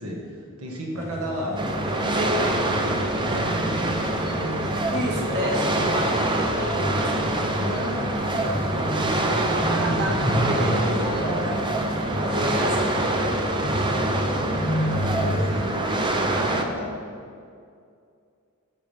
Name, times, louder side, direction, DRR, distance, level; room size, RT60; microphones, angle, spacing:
voice 1, 0.0-1.6 2.0-4.7 7.6-10.2 10.5-11.6 12.4-12.8 13.9-16.9, equal, 85° right, -1 dB, 1.6 m, -34 dB
sound 1, 1.0-15.7, equal, 15° left, 0.9 m, -31 dB
sound 2, 1.6-16.6, right 1 dB, 20° right, 0.6 m, -25 dB
voice 2, 4.9-7.6 9.6-11.1 11.7-11.9 12.3-13.4, equal, 50° right, -3 dB, 1.8 m, -30 dB
12.0 x 7.2 x 3.5 m, 2.4 s
head